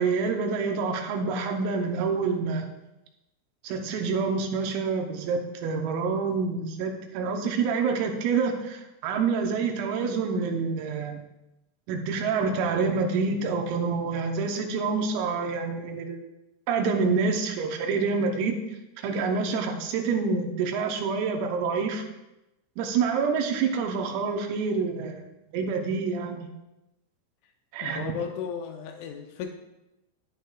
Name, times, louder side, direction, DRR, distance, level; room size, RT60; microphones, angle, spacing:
voice 1, 0.0-2.7 3.6-11.2 11.9-16.2 16.7-18.6 19.0-22.0 22.8-25.2 25.5-26.5 27.7-28.1, right 5 dB, 85° right, 3 dB, 3.6 m, -27 dB
voice 2, 27.8-29.5, left 7 dB, 85° left, 4 dB, 2.7 m, -35 dB
11.0 x 10.5 x 2.4 m, 0.93 s
omnidirectional pair, 5.9 m